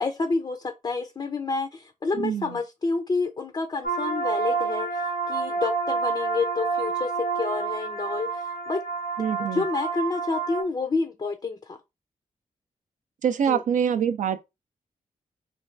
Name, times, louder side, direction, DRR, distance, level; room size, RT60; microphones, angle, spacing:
voice 1, 0.0-8.8 9.4-11.8 13.5-13.6, left 3 dB, 30° left, 0.4 m, -29 dB
voice 2, 2.1-2.6 9.2-9.6 13.2-14.4, right 8 dB, 65° right, 0.4 m, -25 dB
sound 1, 3.8-10.6, right 4 dB, 85° left, 0.7 m, -28 dB
3.2 x 2.2 x 2.5 m
cardioid pair, 60°, 14 cm